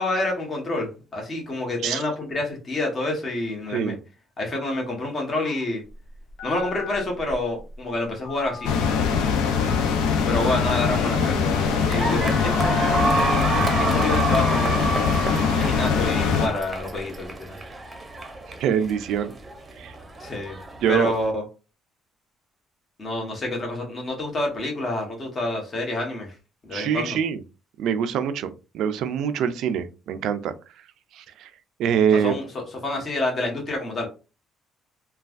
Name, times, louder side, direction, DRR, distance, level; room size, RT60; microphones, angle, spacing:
voice 1, 0.0-4.0 4.4-5.8 6.4-8.7 10.3-17.3 20.2-20.6 20.9-21.4 23.0-26.3 26.6-27.2 32.2-34.1, left 2 dB, 35° left, 0 dB, 1.2 m, -28 dB
voice 2, 3.7-4.0 18.6-19.3 19.8-19.9 20.8-21.1 26.7-27.4 27.8-30.5 31.1-31.5 31.8-32.4, right 8 dB, 75° right, 10 dB, 0.4 m, -24 dB
Telephone, 5.8-17.3, left 5 dB, 70° left, 1.0 m, -40 dB
sound 1, 8.6-16.5, left 6 dB, 85° left, 0.5 m, -22 dB
sound 2, 11.5-21.3, right 3 dB, 25° right, 0.7 m, -29 dB
3.2 x 2.3 x 2.4 m, 0.32 s
cardioid pair, 85°, 0 cm